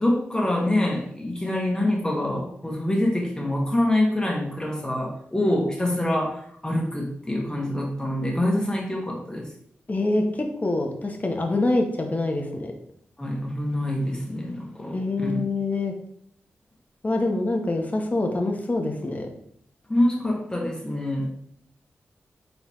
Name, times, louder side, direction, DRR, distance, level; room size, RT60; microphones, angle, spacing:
voice 1, 0.0-9.5 13.2-15.4 19.9-21.3, left 1 dB, 15° left, -1 dB, 1.4 m, -25 dB
voice 2, 9.9-12.7 14.9-15.9 17.0-19.3, left 2 dB, 35° left, 3 dB, 1.0 m, -25 dB
4.0 x 3.9 x 3.0 m, 0.67 s
cardioid pair, 50°, 5 cm